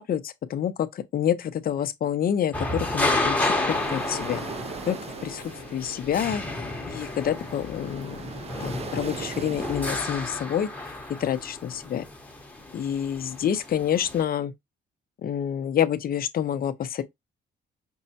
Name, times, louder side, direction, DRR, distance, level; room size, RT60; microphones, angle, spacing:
voice 1, 0.0-4.4 4.9-5.0 5.2-6.4 6.9-8.2 8.6-10.7 11.2-12.0 12.7-14.5 15.2-17.0, left 9 dB, 50° left, 0.5 m, -27 dB
sound 1, 2.5-14.2, left 2 dB, 5° left, 0.9 m, -31 dB
sound 2, 2.9-9.4, left 7 dB, 90° left, 0.7 m, -46 dB
sound 3, 3.7-10.0, right 6 dB, 30° right, 0.4 m, -40 dB
5.3 x 2.1 x 2.7 m
cardioid pair, 90°, 20 cm